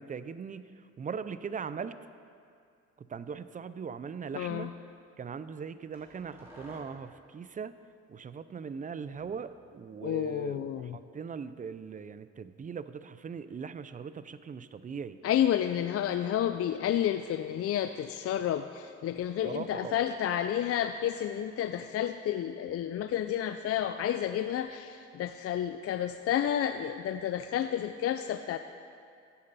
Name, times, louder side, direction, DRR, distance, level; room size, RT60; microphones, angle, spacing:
voice 1, 0.0-2.0 3.0-4.7 5.2-7.7 8.1-15.2 19.4-20.0, right 6 dB, 30° right, 13 dB, 0.5 m, -40 dB
voice 2, 4.3-4.7 10.0-11.0 15.2-28.6, left 10 dB, 55° left, 9 dB, 0.5 m, -30 dB
sound 1, 5.9-7.2 9.1-10.3, equal, 10° right, 3.3 m, -54 dB
14.0 x 9.6 x 4.1 m, 2.3 s
cardioid pair, 90°, 29 cm